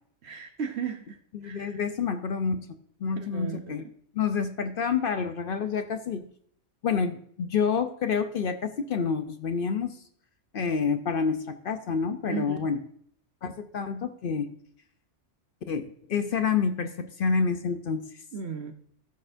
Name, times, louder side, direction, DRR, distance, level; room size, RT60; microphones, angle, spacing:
voice 1, 0.2-1.2 1.4-1.8 3.2-3.7 12.3-12.7 18.3-18.7, right 6 dB, 60° right, 1.1 m, -35 dB
voice 2, 1.3-2.7 3.0-3.8 4.1-6.2 6.8-10.0 10.5-12.8 13.4-14.5 15.7-18.1, left 6 dB, 55° left, 0.7 m, -28 dB
14.5 x 6.5 x 2.6 m
omnidirectional pair, 1.3 m